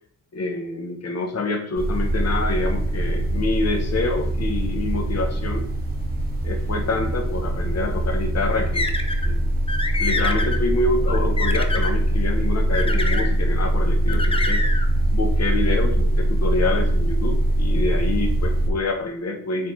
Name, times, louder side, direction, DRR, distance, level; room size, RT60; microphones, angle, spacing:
voice 1, 0.3-5.7 6.4-8.9 9.2-9.4 10.0-14.7 15.1-19.7, left 3 dB, 55° left, 4 dB, 1.0 m, -27 dB
sound 1, 1.7-18.7, right 1 dB, 30° right, 1.7 m, -22 dB
sound 2, 8.7-9.3 9.7-10.6 11.1-11.9 12.7-13.3 14.1-14.9, left 2 dB, 15° left, 0.5 m, -26 dB
8.7 x 3.9 x 3.2 m, 0.67 s
wide cardioid pair, 130°, 31 cm